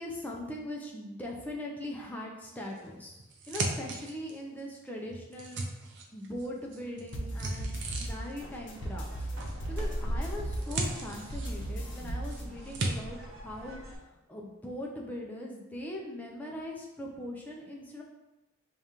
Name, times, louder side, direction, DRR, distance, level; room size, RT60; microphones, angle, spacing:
voice 1, 0.0-9.3 9.7-13.2 13.4-14.0 14.3-18.0, left 1 dB, 10° left, -2 dB, 0.5 m, -41 dB
sound 1, 2.8-4.6 5.0-6.5 6.7-8.4 9.4-10.0 10.3-12.0 12.3-12.9, right 2 dB, 55° right, 0.5 m, -36 dB
sound 2, 7.1-12.4, right 1 dB, 60° left, 0.6 m, -37 dB
sound 3, 8.4-14.0, equal, 75° right, 0.9 m, -40 dB
5.1 x 2.4 x 2.8 m, 1.0 s
head